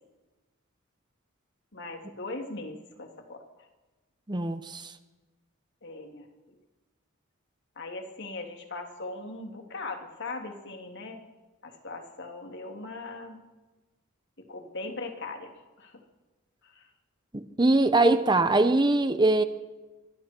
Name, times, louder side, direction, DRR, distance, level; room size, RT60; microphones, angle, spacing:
voice 1, 1.7-3.4 5.8-6.3 7.8-11.2 11.6-13.4 14.4-15.9 16.6-16.8, left 3 dB, 55° left, 3 dB, 2.9 m, -39 dB
voice 2, 4.3-4.9 17.3-19.4, right 2 dB, 20° right, 10 dB, 0.9 m, -22 dB
25.0 x 23.5 x 4.6 m, 1.2 s
head